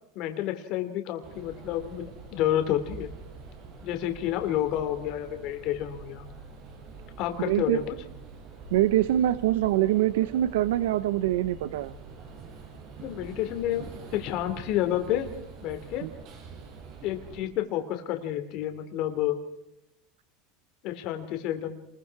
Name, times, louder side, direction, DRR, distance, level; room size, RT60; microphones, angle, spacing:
voice 1, 0.1-3.1 3.8-6.3 7.2-7.9 13.0-13.9 14.1-15.3 15.6-16.1 17.0-19.4 20.8-21.8, left 12 dB, 55° left, 7 dB, 2.9 m, -30 dB
sound 1, 1.2-17.4, right 4 dB, 50° right, 5.8 m, -45 dB
voice 2, 7.5-7.8 8.7-11.9 16.0-16.1, right 13 dB, 85° right, 15 dB, 0.8 m, -24 dB
28.0 x 21.5 x 4.8 m, 0.83 s
supercardioid pair, 125°, 0 cm